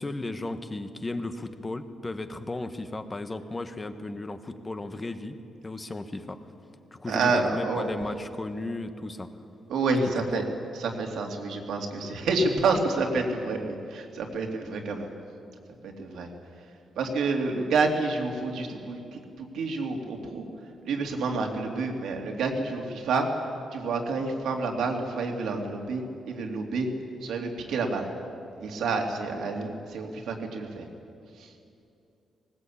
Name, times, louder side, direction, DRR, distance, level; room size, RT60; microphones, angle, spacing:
voice 1, 0.0-5.3 5.6-6.4 6.9-9.3 10.3-10.5, left 2 dB, 20° left, 8 dB, 1.4 m, -35 dB
voice 2, 7.1-7.9 9.7-10.4 10.7-15.1 15.8-16.3 17.0-20.5 20.8-23.4 23.7-26.9 27.2-28.1 28.6-30.9 31.4-31.5, right 3 dB, 80° right, 2 dB, 2.8 m, -28 dB
19.0 x 19.0 x 8.6 m, 2.6 s
cardioid pair, 100°, 0 cm